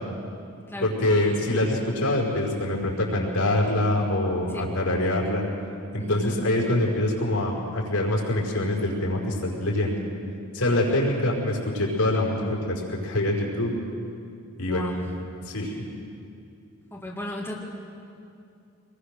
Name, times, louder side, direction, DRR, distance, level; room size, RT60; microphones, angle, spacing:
voice 1, 0.8-5.5 5.9-9.9 10.5-13.7 14.6-14.9 15.5-15.8, left 1 dB, 80° left, -1 dB, 5.0 m, -25 dB
voice 2, 6.0-6.5 10.9-11.0 14.7-15.1 16.9-17.5, left 1 dB, 10° left, -3 dB, 2.3 m, -35 dB
26.0 x 21.0 x 6.8 m, 2.6 s
head